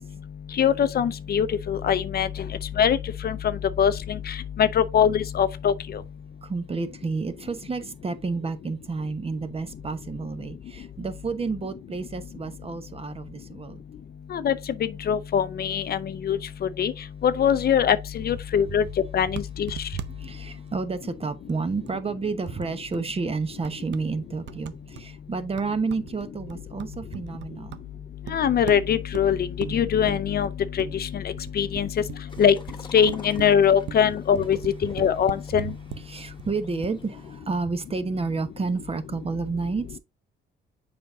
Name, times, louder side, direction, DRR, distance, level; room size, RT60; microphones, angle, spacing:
voice 1, 0.6-2.3 2.8-3.0 3.2-3.4 3.8-3.9 4.3-5.7 14.3-14.6 15.1-16.0 16.2-16.4 16.8-16.9 17.2-18.8 19.1-19.7 28.3-29.4 29.7-30.5 30.8-31.1 31.6-31.9 32.4-32.5 32.9-34.6 34.8-35.7, left 8 dB, 50° left, 0.6 m, -22 dB
voice 2, 6.4-13.8 19.9-27.8 36.0-40.0, right 4 dB, 30° right, 0.9 m, -30 dB
sound 1, 19.3-20.1 20.3-20.4 20.7-20.8 21.5-22.1 22.5-23.2 23.6-24.1 24.5-36.1 36.4-36.5 36.8-37.0, right 10 dB, 65° right, 0.6 m, -40 dB
sound 2, 32.3-37.4, left 4 dB, 25° left, 1.3 m, -47 dB
6.9 x 5.2 x 2.7 m
cardioid pair, 90°, 20 cm